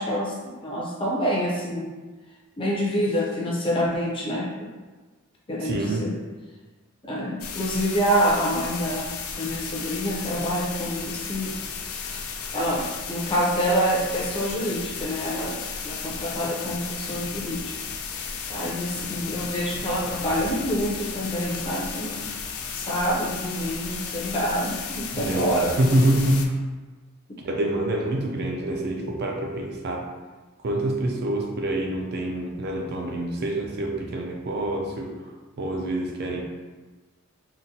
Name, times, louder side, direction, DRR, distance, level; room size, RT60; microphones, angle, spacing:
voice 1, 0.0-1.9 2.6-4.7 5.5-6.1 7.0-11.6 11.9-12.0 12.5-17.7 18.2-22.3 22.7-25.7, equal, 25° left, -4 dB, 0.5 m, -27 dB
voice 2, 5.6-6.1 25.1-26.5 27.4-30.0 30.6-35.1 35.6-36.4, right 1 dB, 50° right, 1 dB, 0.4 m, -26 dB
sound 1, 7.4-26.5, left 6 dB, 75° left, 0.4 m, -34 dB
3.8 x 2.1 x 2.7 m, 1.3 s
head